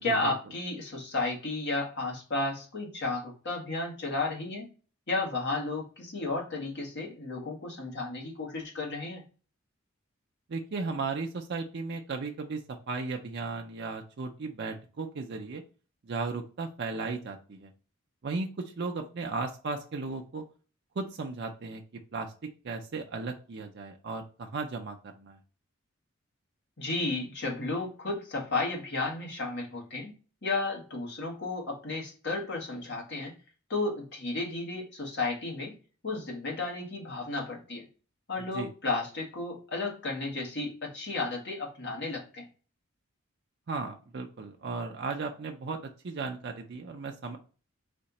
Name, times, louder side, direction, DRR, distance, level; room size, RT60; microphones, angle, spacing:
voice 1, 0.0-4.7 5.1-9.2 26.8-30.1 30.4-33.3 33.7-35.7 36.0-37.8 38.3-42.4, left 3 dB, 55° left, -1 dB, 1.6 m, -33 dB
voice 2, 10.5-15.6 16.1-17.7 18.2-20.4 21.0-21.8 22.1-22.3 22.6-25.4 38.5-38.7 43.7-45.8 46.0-47.4, right 4 dB, 50° right, 3 dB, 0.5 m, -35 dB
4.2 x 2.8 x 4.0 m, 0.37 s
head